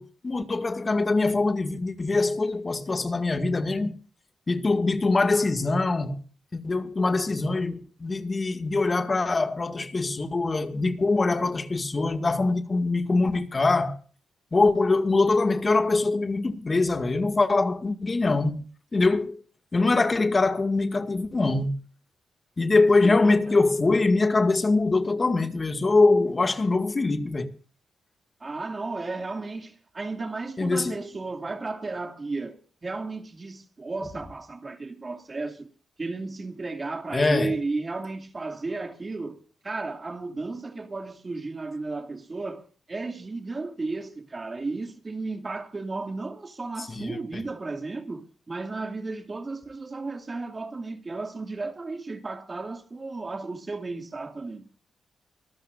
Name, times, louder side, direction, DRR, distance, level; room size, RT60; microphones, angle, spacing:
voice 1, 0.0-4.0 4.5-6.2 6.5-14.0 14.5-19.4 19.7-21.8 22.6-27.5 30.6-30.9 37.1-37.6 46.9-47.5, left 3 dB, 35° left, 2.0 m, -23 dB
voice 2, 23.0-23.6 28.4-35.7 36.0-54.7, right 3 dB, 35° right, 2.7 m, -34 dB
25.0 x 13.5 x 2.6 m
hypercardioid pair, 45°, 0 cm